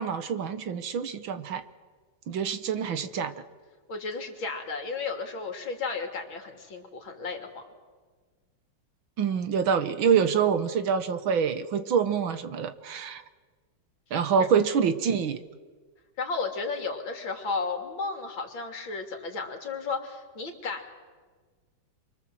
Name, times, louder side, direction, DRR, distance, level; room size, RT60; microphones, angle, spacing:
voice 1, 0.0-1.6 2.3-3.3 9.2-13.2 14.1-15.4, right 7 dB, 70° right, 11 dB, 2.0 m, -26 dB
voice 2, 3.9-7.6 14.4-14.5 16.2-20.9, left 4 dB, 70° left, 4 dB, 3.5 m, -33 dB
27.5 x 24.0 x 7.7 m, 1.5 s
omnidirectional pair, 2.2 m